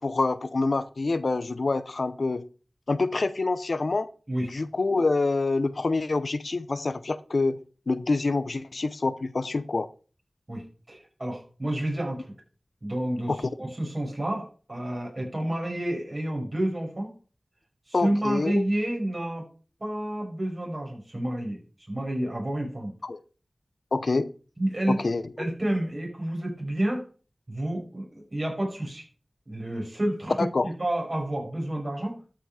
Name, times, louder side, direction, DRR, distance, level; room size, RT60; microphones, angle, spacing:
voice 1, 0.0-2.5 2.9-4.1 4.5-7.6 7.9-9.9 13.3-13.4 17.9-18.6 23.0-23.2 23.9-24.3 24.9-25.5 30.4-30.7, left 3 dB, 70° left, 0.7 m, -26 dB
voice 2, 10.5-12.3 12.8-17.1 17.9-19.4 19.8-21.6 21.9-22.9 24.6-25.0 25.4-27.1 27.5-29.0 29.5-32.2, right 1 dB, 40° right, 6.2 m, -30 dB
12.5 x 5.8 x 5.0 m
wide cardioid pair, 65°, 0 cm